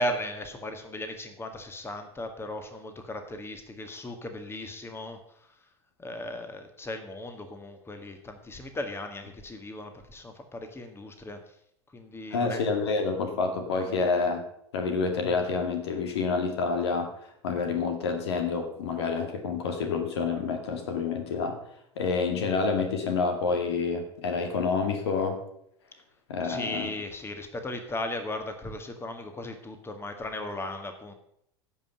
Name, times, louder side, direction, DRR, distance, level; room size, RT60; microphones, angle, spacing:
voice 1, 0.0-5.2 6.0-11.4 11.9-12.6 26.4-31.1, left 1 dB, 15° left, 7 dB, 1.8 m, -36 dB
voice 2, 12.3-14.4 14.7-17.1 17.4-21.6 22.0-25.4 26.3-26.9, left 4 dB, 70° left, 5 dB, 2.0 m, -28 dB
16.0 x 5.6 x 6.5 m, 0.74 s
figure-of-eight pair, 75°, 14 cm